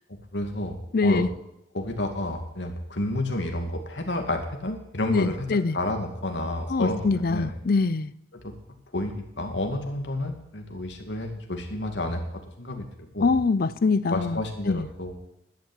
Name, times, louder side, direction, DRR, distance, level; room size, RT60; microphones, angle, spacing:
voice 1, 0.3-0.8 1.0-1.2 1.7-5.5 5.7-7.5 8.4-8.5 8.9-12.2 12.6-12.9 13.1-13.3 14.1-15.1, left 1 dB, 75° left, 2.2 m, -30 dB
voice 2, 0.9-1.3 5.1-5.8 6.7-8.1 13.2-14.4 14.7-14.9, left 4 dB, 55° left, 0.5 m, -23 dB
11.5 x 8.7 x 9.0 m
head